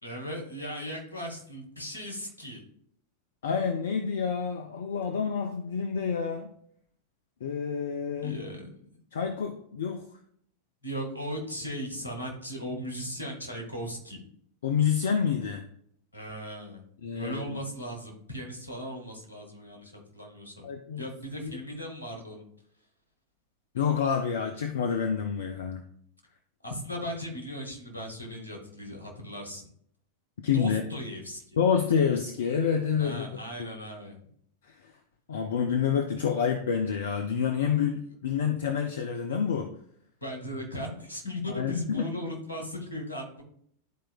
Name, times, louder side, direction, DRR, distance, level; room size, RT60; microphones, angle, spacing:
voice 1, 0.0-2.6 8.2-8.7 10.8-14.2 16.1-16.8 17.1-20.7 21.0-22.4 26.6-29.7 30.5-31.4 33.0-34.2 40.2-43.4, equal, 80° left, 1 dB, 1.7 m, -37 dB
voice 2, 3.4-6.5 7.4-8.4 9.1-10.0 14.6-15.6 17.0-17.6 20.6-21.0 21.4-21.6 23.7-25.8 30.4-30.8 31.6-33.3 34.7-34.9 35.3-39.7 41.5-42.1, left 7 dB, 60° left, 6 dB, 0.5 m, -28 dB
11.0 x 4.4 x 2.3 m, 0.66 s
figure-of-eight pair, 90°, 0 cm